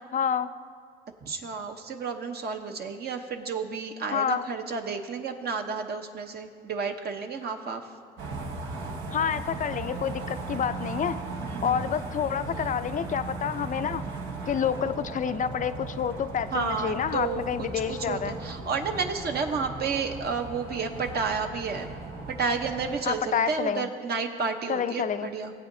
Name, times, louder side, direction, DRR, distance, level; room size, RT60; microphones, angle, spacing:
voice 1, 0.1-0.5 4.1-4.4 9.1-11.2 11.6-14.0 14.5-18.4 23.0-23.9 24.7-25.3, left 8 dB, 40° left, 12 dB, 0.4 m, -28 dB
voice 2, 1.2-7.8 11.5-11.9 16.5-21.9 22.3-25.5, right 5 dB, 55° right, 4 dB, 0.9 m, -31 dB
sound 1, 8.2-23.0, right 3 dB, 80° right, 1.0 m, -37 dB
19.0 x 8.2 x 2.7 m, 2.1 s
cardioid pair, 90°, 20 cm